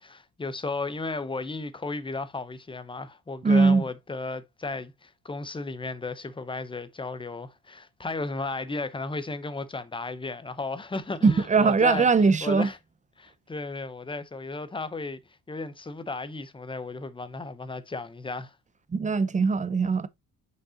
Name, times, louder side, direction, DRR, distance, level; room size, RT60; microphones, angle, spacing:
voice 1, 0.0-12.8 13.2-15.2 15.5-18.6, left 3 dB, 15° left, 0.7 m, -34 dB
voice 2, 3.4-3.8 11.2-12.7 18.9-20.1, right 4 dB, 20° right, 0.6 m, -21 dB
6.3 x 5.3 x 2.8 m
cardioid pair, 120°, 37 cm